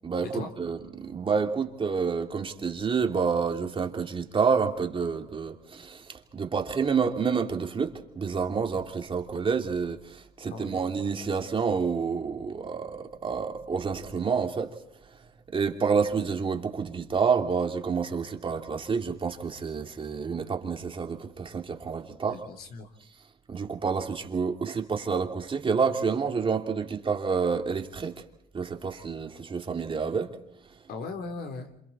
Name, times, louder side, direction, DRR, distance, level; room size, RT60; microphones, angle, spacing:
voice 1, 0.0-14.8 15.5-22.4 23.5-28.2 28.5-30.4, right 5 dB, 30° right, 3 dB, 2.8 m, -28 dB
voice 2, 10.5-10.8 22.3-22.9 30.9-31.7, left 4 dB, 70° left, 6 dB, 3.6 m, -38 dB
27.5 x 27.5 x 4.3 m, 0.79 s
cardioid pair, 110°, 17 cm